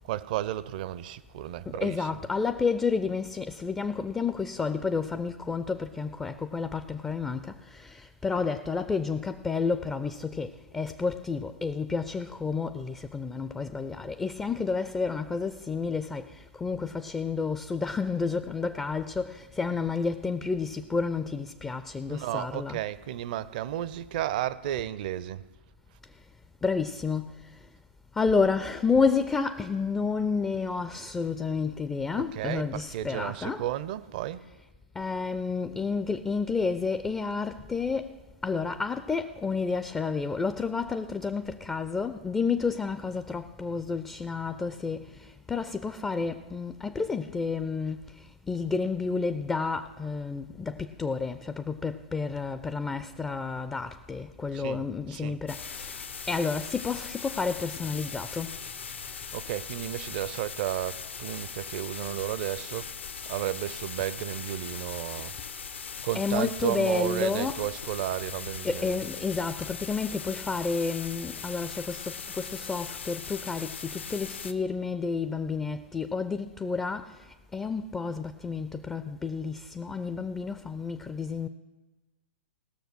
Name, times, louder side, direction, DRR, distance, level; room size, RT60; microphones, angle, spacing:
voice 1, 0.0-2.1 22.1-25.4 32.4-34.4 54.5-54.8 55.1-55.4 59.0-62.9 63.3-65.3 66.0-69.0, right 13 dB, 45° right, 0.5 m, -33 dB
voice 2, 1.7-22.8 26.6-27.3 28.2-33.7 35.0-38.2 38.4-48.0 48.5-58.6 66.1-67.7 68.6-77.2 77.5-81.5, left 4 dB, 10° left, 0.4 m, -30 dB
sound 1, 55.5-74.5, left 6 dB, 75° left, 0.8 m, -39 dB
17.5 x 6.6 x 6.1 m
figure-of-eight pair, 115°, 6 cm